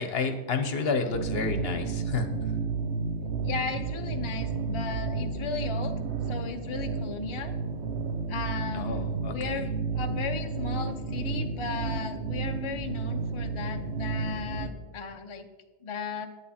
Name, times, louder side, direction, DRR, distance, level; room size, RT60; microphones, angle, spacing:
voice 1, 0.0-2.3 8.7-9.6, left 4 dB, 65° left, 8 dB, 1.1 m, -30 dB
sound 1, 1.1-14.7, right 4 dB, 75° right, 1.2 m, -32 dB
voice 2, 3.4-6.0 6.3-7.6 8.3-15.5 15.8-16.3, left 5 dB, 35° left, 6 dB, 0.6 m, -36 dB
11.0 x 8.7 x 4.2 m, 1.2 s
omnidirectional pair, 1.1 m